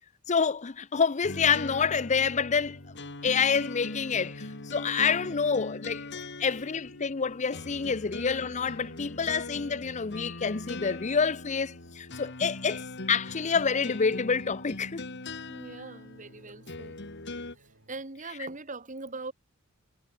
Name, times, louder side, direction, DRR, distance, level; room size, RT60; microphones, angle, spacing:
voice 1, 0.3-2.8 3.2-6.0 6.4-15.1, left 5 dB, 35° left, 0.6 m, -28 dB
sound 1, 1.2-17.6, left 2 dB, 50° left, 2.4 m, -41 dB
sound 2, 2.3-18.0, right 1 dB, 60° right, 6.1 m, -63 dB
voice 2, 15.5-17.0 17.9-19.3, right 3 dB, 35° right, 2.2 m, -41 dB
head